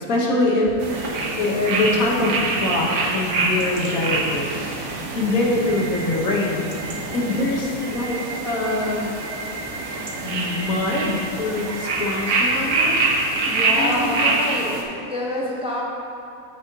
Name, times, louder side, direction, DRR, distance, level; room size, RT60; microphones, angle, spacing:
voice 1, 0.1-4.5 5.1-6.7 7.1-8.2 8.4-9.1 10.2-12.9 13.3-14.9, left 2 dB, 70° left, -3 dB, 1.7 m, -24 dB
sound 1, 0.8-14.8, right 3 dB, 85° right, 1.5 m, -25 dB
sound 2, 5.7-14.0, right 3 dB, 60° right, 0.8 m, -36 dB
voice 2, 13.5-14.7 15.1-15.8, left 1 dB, 5° right, -4 dB, 0.8 m, -27 dB
14.0 x 6.4 x 2.9 m, 2.6 s
omnidirectional pair, 1.6 m